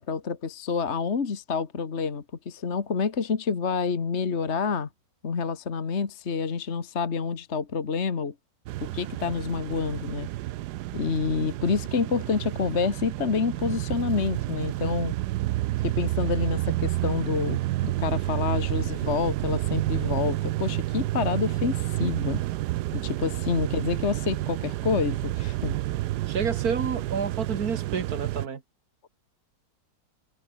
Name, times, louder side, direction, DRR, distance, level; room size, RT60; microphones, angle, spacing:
voice 1, 0.0-4.9 5.2-8.3 8.8-10.3 10.9-15.2 15.8-22.4 22.9-25.8, left 5 dB, 40° left, 1.8 m, -28 dB
sound 1, 8.7-28.5, right 16 dB, 75° right, 1.1 m, -30 dB
voice 2, 26.3-28.6, right 6 dB, 55° right, 2.3 m, -29 dB
omnidirectional pair, 1.9 m